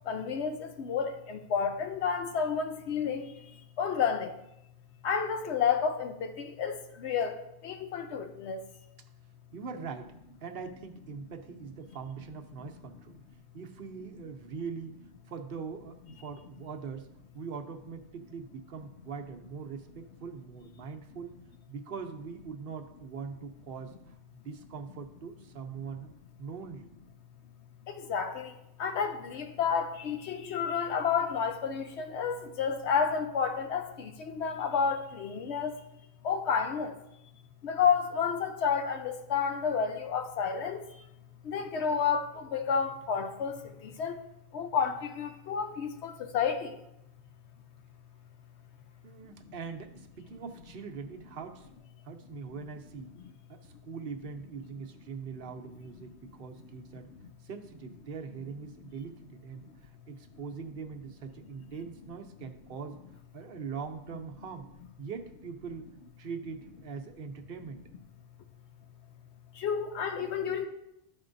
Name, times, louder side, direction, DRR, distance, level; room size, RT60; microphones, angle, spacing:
voice 1, 0.0-4.4 5.0-8.6 27.9-35.8 36.2-37.0 37.6-41.1 41.4-44.2 44.5-46.8 69.5-70.7, left 6 dB, 90° left, 6 dB, 1.0 m, -31 dB
voice 2, 9.5-13.2 13.5-17.1 17.3-21.4 21.7-26.1 26.4-26.9 49.0-51.7 52.0-53.2 53.5-57.1 57.4-63.0 63.3-64.7 65.0-67.8, right 5 dB, 60° right, 5 dB, 0.9 m, -42 dB
12.5 x 4.4 x 2.6 m, 0.83 s
omnidirectional pair, 1.1 m